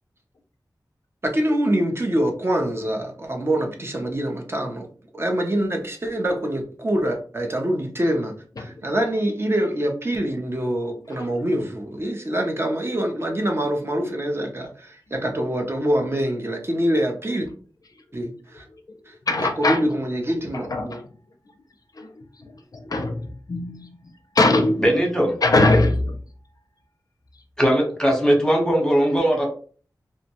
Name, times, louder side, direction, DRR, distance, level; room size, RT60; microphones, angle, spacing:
voice 1, 1.2-4.9 5.1-17.5 18.1-18.6 19.1-21.0, right 1 dB, 35° right, 2 dB, 0.5 m, -25 dB
voice 2, 19.3-19.8 20.5-21.0 22.0-22.1 22.4-23.9 24.4-24.8 25.4-26.2, left 2 dB, 60° left, 5 dB, 0.4 m, -21 dB
voice 3, 24.8-25.3 27.6-29.5, equal, 10° left, 1 dB, 0.9 m, -19 dB
2.6 x 2.1 x 2.8 m, 0.42 s
wide cardioid pair, 75°, 7 cm